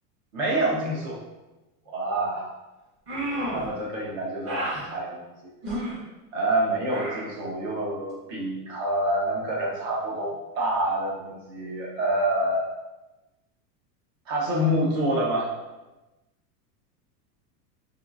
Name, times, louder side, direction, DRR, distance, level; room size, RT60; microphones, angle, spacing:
voice 1, 0.3-1.2 1.9-2.5 3.5-5.2 6.3-12.6 14.3-15.5, right 1 dB, 50° right, -3 dB, 1.0 m, -27 dB
sound 1, 3.1-3.7 4.4-4.8 5.6-6.0 6.9-7.3, right 1 dB, 30° right, 1.0 m, -30 dB
2.7 x 2.5 x 2.4 m, 1.1 s
supercardioid pair, 125°, 49 cm